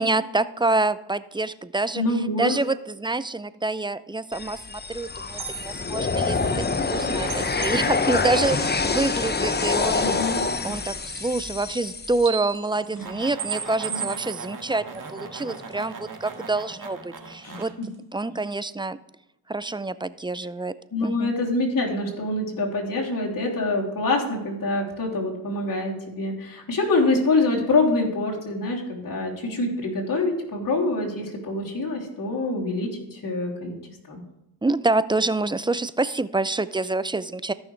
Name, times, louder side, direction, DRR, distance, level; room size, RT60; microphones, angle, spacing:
voice 1, 0.0-2.0 2.4-10.1 10.6-17.7 18.1-19.0 19.5-20.7 21.0-21.3 34.6-37.5, right 2 dB, 10° right, 15 dB, 0.5 m, -27 dB
voice 2, 1.9-2.6 10.0-10.4 12.9-13.0 13.9-14.1 17.4-17.9 20.9-33.8 34.1-34.2, left 2 dB, 60° left, -3 dB, 3.2 m, -25 dB
sound 1, 4.3-12.3, left 4 dB, 25° left, 0.8 m, -26 dB
sound 2, 5.0-5.1 5.2-5.7 7.1-8.0 10.0-10.1 10.7-10.8 11.7-11.8 12.1-15.7 16.0-16.1 16.3-16.4 16.7-16.8 17.2-17.5 17.8-17.9, right 8 dB, 80° right, 1.4 m, -35 dB
sound 3, 12.7-17.7, right 4 dB, 55° right, 1.8 m, -39 dB
14.5 x 6.3 x 3.3 m, 0.92 s
cardioid pair, 60°, 38 cm